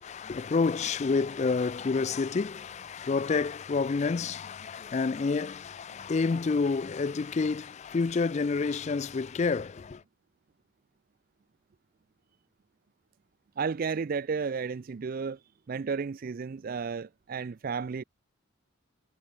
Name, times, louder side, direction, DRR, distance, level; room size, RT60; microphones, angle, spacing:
voice 1, 0.0-10.0, left 4 dB, 30° left, 0.3 m, -29 dB
voice 2, 13.6-15.4 15.7-18.0, right 5 dB, 45° right, 0.4 m, -32 dB
head